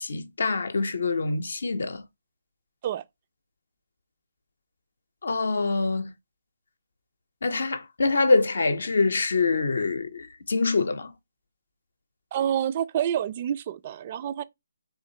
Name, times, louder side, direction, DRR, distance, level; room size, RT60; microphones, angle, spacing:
voice 1, 0.0-2.0 5.2-6.1 7.4-11.1, left 3 dB, 65° left, 0.6 m, -25 dB
voice 2, 12.3-14.4, right 10 dB, 35° right, 0.3 m, -28 dB
3.7 x 3.1 x 2.7 m
figure-of-eight pair, 150°, 0 cm